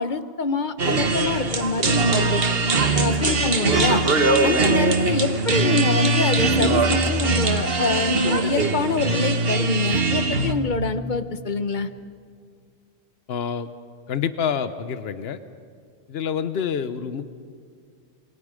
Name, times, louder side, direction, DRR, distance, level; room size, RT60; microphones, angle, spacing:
voice 1, 0.0-2.4 2.9-4.0 4.4-11.9, left 4 dB, 50° left, 11 dB, 1.0 m, -25 dB
sound 1, 0.8-10.5, right 3 dB, 65° right, 1.6 m, -21 dB
voice 2, 13.3-13.7 14.1-15.4 16.1-17.3, left 7 dB, 75° left, 11 dB, 1.1 m, -27 dB
28.0 x 22.0 x 5.1 m, 2.1 s
omnidirectional pair, 1.1 m